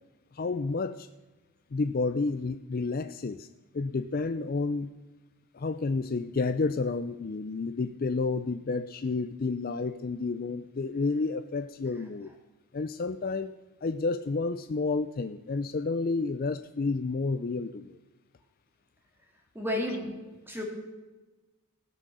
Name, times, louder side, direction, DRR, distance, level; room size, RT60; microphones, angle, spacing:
voice 1, 0.3-1.1 1.7-3.5 3.7-4.9 5.5-12.3 12.7-13.5 13.8-18.0, left 3 dB, 40° left, 11 dB, 0.4 m, -30 dB
voice 2, 19.5-20.1 20.5-20.6, left 1 dB, 10° right, 1 dB, 2.5 m, -31 dB
18.5 x 6.3 x 6.7 m, 1.2 s
head